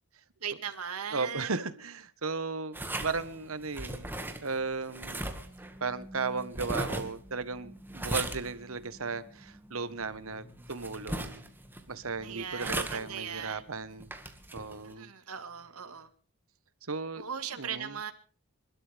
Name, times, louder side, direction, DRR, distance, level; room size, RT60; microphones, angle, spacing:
voice 1, 0.4-1.7 12.2-13.6 14.8-16.1 17.2-18.1, right 7 dB, 90° right, 2.1 m, -39 dB
voice 2, 1.1-4.1 4.4-5.2 5.8-11.5 11.9-14.1 14.5-15.1 16.8-17.2 17.6-18.0, right 4 dB, 70° right, 1.4 m, -35 dB
sound 1, 2.7-14.9, right 1 dB, 10° right, 1.9 m, -39 dB
29.5 x 12.5 x 3.5 m
head